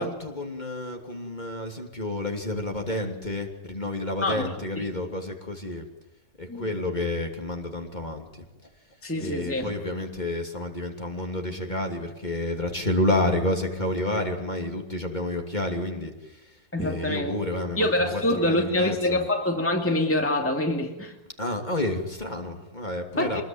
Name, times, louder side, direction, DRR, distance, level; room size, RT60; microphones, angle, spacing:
voice 1, 0.0-5.9 6.4-8.4 9.2-16.5 16.8-19.2 21.4-23.4, left 1 dB, 30° left, 3 dB, 3.1 m, -30 dB
voice 2, 4.2-4.8 6.5-6.8 9.0-9.7 16.7-17.4 17.8-21.2 23.2-23.4, left 1 dB, 10° left, 2 dB, 2.6 m, -26 dB
25.5 x 21.0 x 9.3 m, 0.95 s
omnidirectional pair, 1.5 m